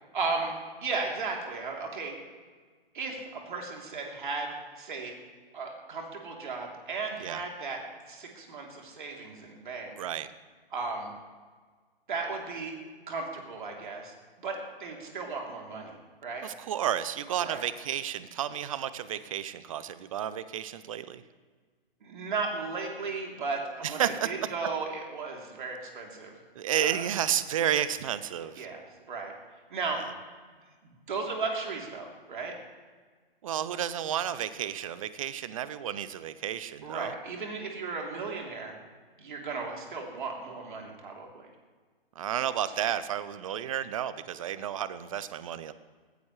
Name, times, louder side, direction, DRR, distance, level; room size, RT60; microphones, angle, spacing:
voice 1, 0.1-2.2 2.9-5.1 5.5-7.8 8.1-9.9 10.7-11.1 12.1-12.7 13.1-14.1 14.4-16.5 17.4-17.6 22.0-26.3 26.8-27.1 28.6-28.8 29.1-29.3 29.7-30.0 31.1-32.5 36.8-38.8 39.2-41.5, right 4 dB, 55° right, 0 dB, 3.3 m, -35 dB
voice 2, 10.0-10.3 16.4-21.2 23.8-24.1 26.6-28.7 30.0-30.1 33.4-37.1 42.2-45.7, right 10 dB, 35° right, 14 dB, 0.7 m, -32 dB
19.0 x 15.5 x 3.2 m, 1.5 s
figure-of-eight pair, 130°, 30 cm